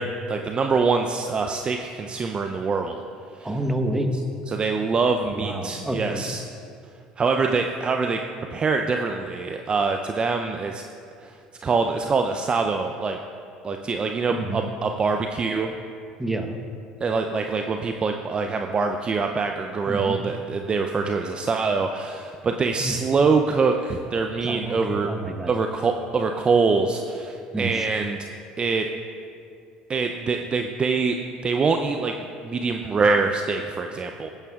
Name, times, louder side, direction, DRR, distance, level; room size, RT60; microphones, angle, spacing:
voice 1, 0.0-3.0 3.4-3.6 4.1-6.4 7.2-8.2 8.5-10.8 11.2-11.4 11.6-13.2 13.6-15.7 17.0-25.1 25.5-28.3 28.6-28.9 29.9-31.2 31.4-32.2 32.4-34.3, right 4 dB, 30° right, 4 dB, 0.5 m, -24 dB
voice 2, 3.4-4.1 5.4-6.2 14.3-14.6 16.2-16.5 19.9-20.2 22.8-22.9 24.4-25.5 27.5-27.7, right 1 dB, 10° right, 5 dB, 1.1 m, -28 dB
17.0 x 8.8 x 2.4 m, 2.5 s
hypercardioid pair, 70°, 3 cm